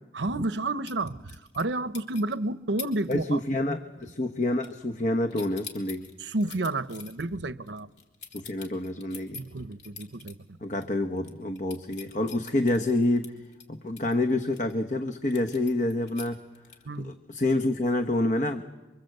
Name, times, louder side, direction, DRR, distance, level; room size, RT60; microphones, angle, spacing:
voice 1, 0.1-3.4 6.2-7.9 9.3-10.6 16.8-17.1, right 2 dB, 85° right, 0.9 m, -31 dB
sound 1, 0.8-1.7 1.9-2.3 2.8-3.1 3.4-3.8 4.0-5.0 5.3-10.3 10.8-10.9 11.2-14.7 15.3-17.0, left 6 dB, 70° left, 3.3 m, -45 dB
voice 2, 3.1-6.1 8.3-9.4 10.6-13.3 13.7-16.4 17.0-18.6, left 2 dB, 45° left, 1.1 m, -27 dB
28.5 x 24.5 x 8.0 m
head